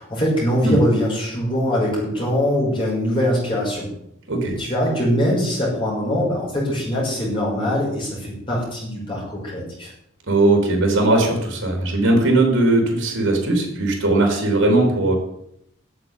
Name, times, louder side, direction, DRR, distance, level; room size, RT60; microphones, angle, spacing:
voice 1, 0.0-3.9 4.6-9.9, equal, 25° left, -5 dB, 5.7 m, -22 dB
voice 2, 10.3-15.1, right 2 dB, 80° right, 3 dB, 3.8 m, -18 dB
9.6 x 7.5 x 9.4 m, 0.75 s
head